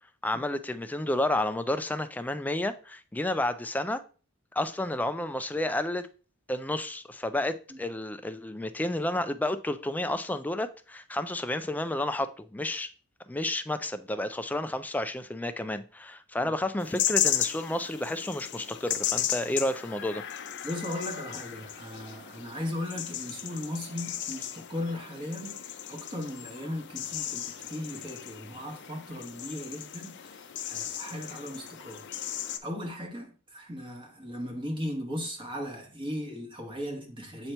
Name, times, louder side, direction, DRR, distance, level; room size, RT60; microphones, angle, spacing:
voice 1, 0.2-4.0 4.5-6.1 6.5-12.9 13.3-20.2, left 1 dB, 10° left, 0.3 m, -31 dB
sound 1, 16.8-32.6, left 11 dB, 55° left, 0.5 m, -35 dB
voice 2, 20.6-32.0 32.6-37.5, left 1 dB, 25° right, 1.0 m, -37 dB
7.8 x 2.9 x 4.4 m
head